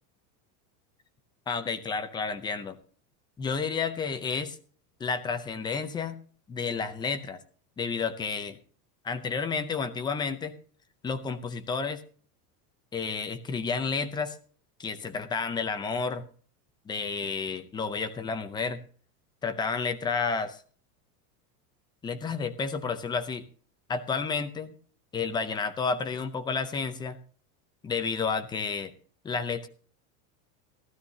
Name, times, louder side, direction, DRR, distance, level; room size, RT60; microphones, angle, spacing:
voice 1, 1.5-2.8 3.4-4.6 5.0-6.2 6.5-7.4 7.8-8.6 9.0-10.6 11.0-12.0 12.9-14.4 14.8-16.2 16.9-18.8 19.4-20.6 22.0-23.4 23.9-24.8 25.1-27.2 27.8-28.9 29.2-29.7, left 5 dB, 10° left, 10 dB, 0.6 m, -31 dB
16.0 x 12.5 x 2.8 m, 0.43 s
supercardioid pair, 160°, 45 cm